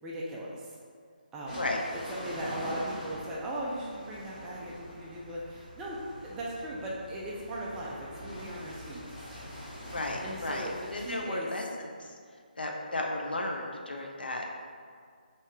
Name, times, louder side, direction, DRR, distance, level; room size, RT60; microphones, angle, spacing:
voice 1, 0.0-0.7 1.3-1.7 2.1-9.1 10.2-11.5, right 1 dB, 10° right, -6 dB, 0.3 m, -38 dB
sound 1, 1.5-11.1, equal, 20° left, 0.9 m, -44 dB
voice 2, 9.9-12.0 12.6-14.5, left 2 dB, 75° left, 0 dB, 0.5 m, -34 dB
3.2 x 2.7 x 3.5 m, 2.1 s
figure-of-eight pair, 150°, 5 cm